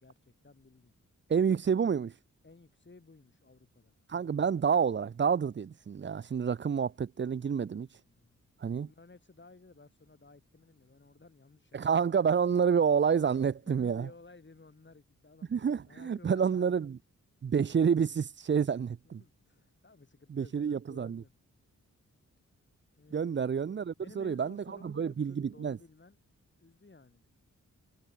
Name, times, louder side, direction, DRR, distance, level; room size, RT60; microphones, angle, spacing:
voice 1, 0.0-0.9 2.4-3.9 7.5-7.7 8.1-8.5 8.8-11.8 13.6-16.8 19.0-21.3 22.9-23.5 24.0-26.2 26.6-27.2, left 3 dB, 35° left, 2.9 m, -56 dB
voice 2, 1.3-2.1 4.1-7.9 8.6-8.9 11.7-14.1 15.5-17.0 17.4-19.2 20.3-21.2 23.1-25.8, right 6 dB, 35° right, 0.5 m, -29 dB
cardioid pair, 45°, 33 cm